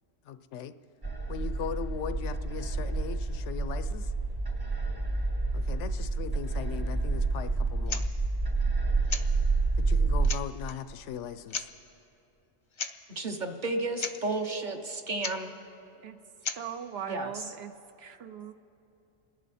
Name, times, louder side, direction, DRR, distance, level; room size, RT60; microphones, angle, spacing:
voice 1, 0.3-0.8 1.3-4.1 5.5-8.0 9.8-11.7, left 8 dB, 75° left, 13 dB, 0.9 m, -39 dB
sound 1, 1.0-10.3, right 3 dB, 25° right, 0.6 m, -29 dB
sound 2, 7.9-8.1 9.1-9.3 9.9-10.0 10.2-10.7 11.5-11.7 12.7-13.0 13.2-13.3 13.7-13.8 14.0-14.2 15.2-15.4 16.4-16.6, left 4 dB, 40° left, 0.4 m, -35 dB
voice 2, 13.1-15.5 17.1-17.3, right 2 dB, 45° right, 4 dB, 1.0 m, -32 dB
voice 3, 16.6-17.7 18.0-18.5, right 7 dB, 65° right, 9 dB, 0.7 m, -39 dB
28.5 x 11.0 x 4.2 m, 2.8 s
omnidirectional pair, 1.2 m